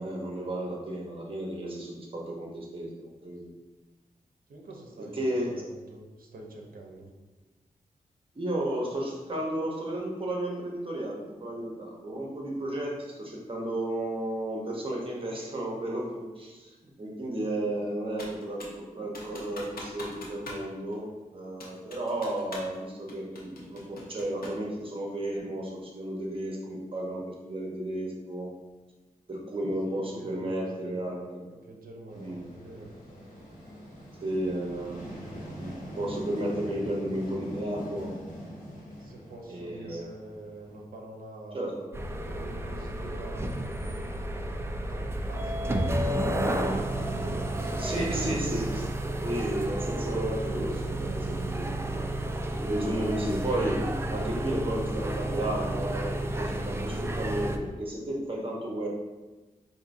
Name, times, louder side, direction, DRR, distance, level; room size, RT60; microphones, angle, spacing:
voice 1, 0.0-3.5 5.1-5.5 8.3-21.0 21.3-28.5 29.3-31.4 32.1-32.4 34.2-38.1 39.5-40.1 41.5-41.7 47.8-48.8 49.2-51.7 52.7-53.8 54.1-58.9, right 1 dB, 35° right, -2 dB, 1.0 m, -33 dB
voice 2, 4.5-7.1 12.6-12.7 21.0-21.2 29.9-31.0 31.5-32.9 36.7-37.3 39.0-41.6 42.2-44.0 44.9-48.6 50.4-51.2, right 2 dB, 75° right, 0 dB, 0.7 m, -46 dB
Computer keyboard, 18.2-18.8 19.1-20.7 20.9-21.0 21.6-22.8 23.1-24.7, left 2 dB, 85° left, 0.8 m, -42 dB
sound 1, 32.1-40.8, equal, 60° left, 1.5 m, -43 dB
sound 2, 41.9-57.6, right 1 dB, 15° right, 0.3 m, -31 dB
4.7 x 2.7 x 2.6 m, 1.2 s
wide cardioid pair, 85°, 15 cm